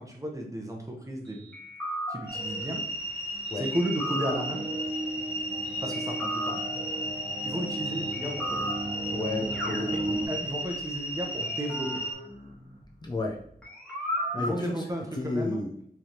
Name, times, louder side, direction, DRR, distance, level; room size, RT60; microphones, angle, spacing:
voice 1, 0.0-1.5 2.1-2.8 3.6-4.6 5.8-6.6 7.4-8.7 9.9-10.0 10.3-12.0 14.3-15.8, equal, 20° right, 0 dB, 0.8 m, -34 dB
sound 1, 1.5-2.6 3.7-4.8 5.9-7.0 8.1-9.2 9.5-10.6 11.4-13.3 13.6-14.6, equal, 5° left, 1.5 m, -36 dB
sound 2, 2.3-12.1, equal, 75° left, 1.2 m, -35 dB
sound 3, 3.3-10.3, right 1 dB, 65° right, 1.2 m, -36 dB
voice 2, 9.1-10.2 13.0-13.4 14.3-14.8 15.1-15.7, left 2 dB, 25° left, -1 dB, 0.5 m, -32 dB
4.4 x 3.3 x 2.8 m, 0.67 s
wide cardioid pair, 100°, 16 cm